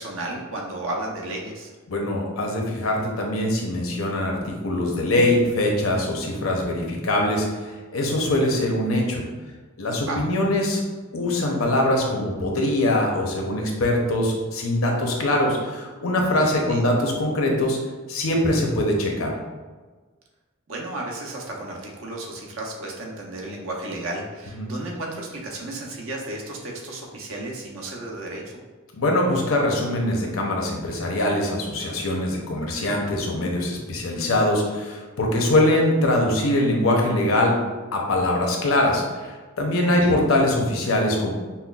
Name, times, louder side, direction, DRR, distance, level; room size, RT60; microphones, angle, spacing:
voice 1, 0.0-1.7 10.0-10.2 16.3-16.9 20.7-28.6 39.8-40.2, right 2 dB, 75° right, -1 dB, 0.7 m, -33 dB
voice 2, 1.9-7.5 7.9-9.2 9.8-10.8 11.1-17.8 18.1-19.3 24.6-24.7 29.0-37.5 37.9-41.3, left 1 dB, 80° left, 0 dB, 0.7 m, -22 dB
5.5 x 2.0 x 2.3 m, 1.3 s
head